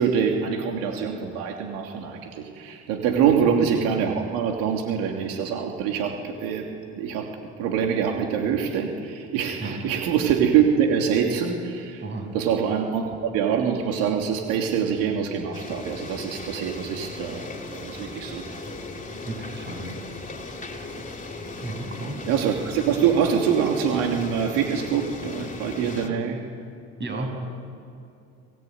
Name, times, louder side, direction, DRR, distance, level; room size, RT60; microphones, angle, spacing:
voice 1, 0.0-7.3 7.6-12.0 12.3-17.4 17.7-18.5 22.3-26.4, right 7 dB, 85° right, 2 dB, 2.9 m, -24 dB
sound 1, 15.5-26.1, left 2 dB, 25° left, 3.4 m, -37 dB
voice 2, 19.2-20.0 21.6-22.2 27.0-27.3, right 2 dB, 35° right, 3 dB, 7.6 m, -33 dB
28.5 x 19.0 x 9.4 m, 2.6 s
cardioid pair, 100°, 33 cm